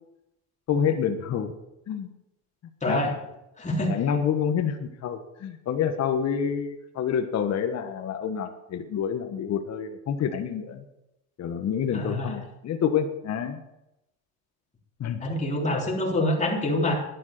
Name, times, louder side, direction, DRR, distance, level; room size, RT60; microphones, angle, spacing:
voice 1, 0.7-1.5 1.9-2.1 2.8-3.0 3.9-10.8 11.4-13.6 15.0-15.2, left 8 dB, 45° left, 6 dB, 1.4 m, -28 dB
voice 2, 2.8-3.1 3.6-3.9 11.9-12.4 15.2-17.0, left 1 dB, 20° left, -1 dB, 3.6 m, -26 dB
10.5 x 10.5 x 6.7 m, 0.89 s
cardioid pair, 110°, 35 cm